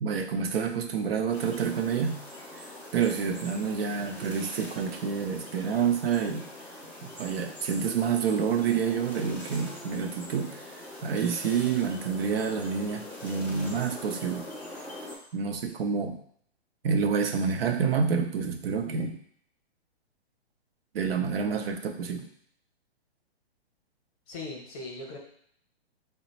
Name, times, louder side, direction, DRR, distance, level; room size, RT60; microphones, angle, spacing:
voice 1, 0.0-2.2 2.9-6.5 7.0-14.5 15.3-16.2 16.8-19.2 20.9-22.3, right 6 dB, 65° right, 6 dB, 0.6 m, -28 dB
sound 1, 1.3-15.1, left 1 dB, 5° right, 0.4 m, -43 dB
voice 2, 24.3-25.2, left 2 dB, 35° left, 0 dB, 0.8 m, -40 dB
3.8 x 2.1 x 4.0 m, 0.65 s
hypercardioid pair, 160°, 32 cm